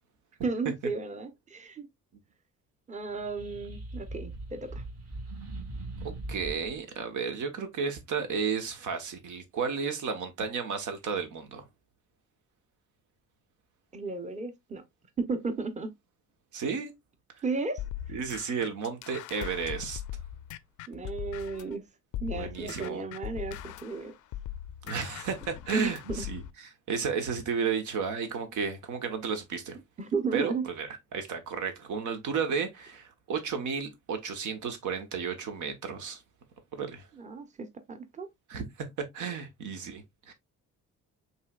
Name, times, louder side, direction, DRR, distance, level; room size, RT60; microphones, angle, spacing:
voice 1, 0.4-1.9 2.9-4.8 13.9-14.8 15.2-15.9 17.4-18.1 20.9-21.8 22.2-24.1 25.7-26.3 30.0-30.7 37.1-38.3, right 4 dB, 25° right, 0.8 m, -34 dB
sound 1, 3.1-6.8, right 2 dB, 50° right, 1.9 m, -40 dB
voice 2, 6.3-11.6 16.5-16.9 18.1-20.0 22.3-23.0 24.9-29.8 30.3-36.2 36.7-37.1 38.5-38.9 39.1-40.3, right 6 dB, 80° right, 1.2 m, -33 dB
sound 2, 17.8-21.7 22.1-26.5, left 12 dB, 80° left, 0.5 m, -40 dB
5.5 x 3.2 x 2.3 m
cardioid pair, 90°, 30 cm